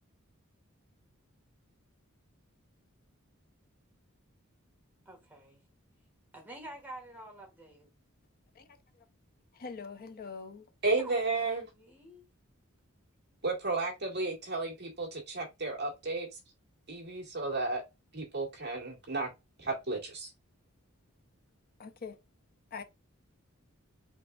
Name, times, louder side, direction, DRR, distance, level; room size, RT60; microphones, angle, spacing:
voice 1, 5.1-5.6 6.3-7.9 11.0-12.3, right 1 dB, 10° right, 1.6 m, -49 dB
voice 2, 9.5-10.7 21.8-22.2 22.7-22.8, left 5 dB, 45° left, 0.5 m, -43 dB
voice 3, 10.8-11.7 13.4-16.4 16.9-17.8 18.1-19.3 19.6-20.3, right 3 dB, 55° right, 1.9 m, -33 dB
4.5 x 3.6 x 2.3 m
head